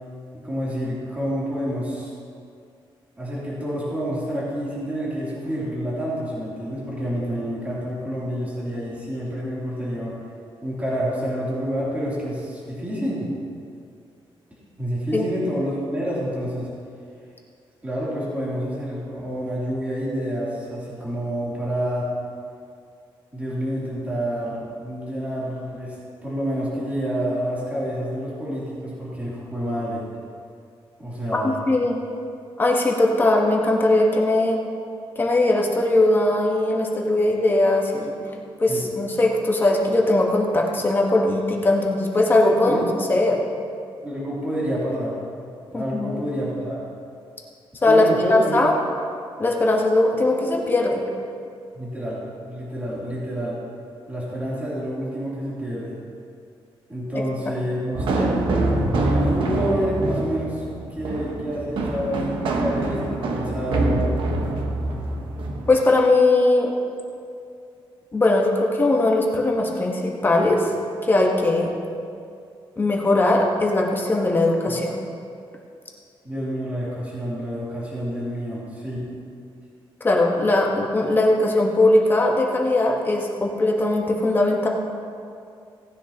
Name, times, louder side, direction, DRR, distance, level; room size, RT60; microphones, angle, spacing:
voice 1, 0.3-2.1 3.2-10.1 10.6-13.3 14.8-16.7 17.8-22.1 23.3-25.9 26.2-30.0 31.0-31.7 38.7-38.8 42.6-42.9 44.0-45.2 45.7-46.8 47.8-48.6 51.7-53.6 54.1-56.0 56.9-58.4 58.9-60.6 60.9-64.0 74.7-74.8 76.2-79.1, equal, 15° right, -8 dB, 3.1 m, -28 dB
voice 2, 31.3-32.0 32.6-34.6 35.1-38.1 38.6-42.8 43.1-43.4 45.7-46.2 47.8-48.0 48.3-48.7 49.4-51.0 65.7-66.7 68.1-70.7 71.1-71.7 72.8-75.0 80.0-84.7, left 2 dB, 20° left, -1 dB, 1.3 m, -20 dB
sound 1, 57.9-65.8, right 2 dB, 70° right, 1.2 m, -25 dB
18.0 x 9.9 x 2.9 m, 2.4 s
wide cardioid pair, 150°, 9 cm